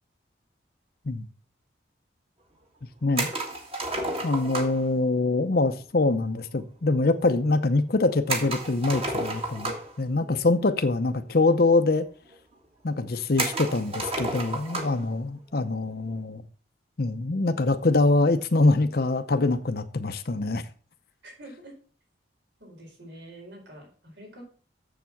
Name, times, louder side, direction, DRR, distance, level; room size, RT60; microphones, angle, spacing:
voice 1, 3.0-3.3 4.2-9.7 10.0-12.1 12.8-16.4 17.0-20.6, left 3 dB, 55° left, 0.7 m, -24 dB
sound 1, 3.2-4.9 8.3-10.0 11.1-11.2 11.4-11.5 12.3-12.4 13.4-15.0, right 2 dB, 30° right, 1.8 m, -31 dB
voice 2, 21.2-21.7 22.6-24.4, right 1 dB, 75° right, 4.6 m, -46 dB
7.3 x 7.1 x 5.8 m
head